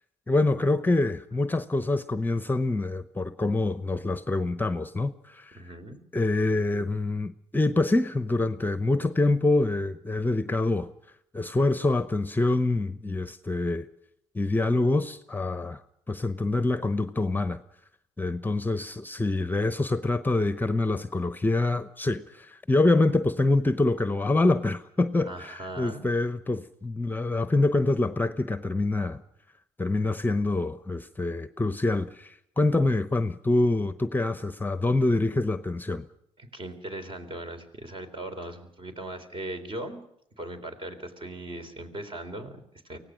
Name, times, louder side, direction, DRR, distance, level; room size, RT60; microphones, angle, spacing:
voice 1, 0.3-5.6 6.1-10.9 11.3-13.9 14.3-15.8 16.1-17.6 18.2-29.2 29.8-36.1, left 2 dB, 15° left, 0.8 m, -25 dB
voice 2, 5.5-6.0 25.2-26.1 36.4-40.0 40.4-43.0, right 1 dB, 40° right, 3.6 m, -39 dB
24.5 x 17.0 x 6.3 m
supercardioid pair, 65°, 13 cm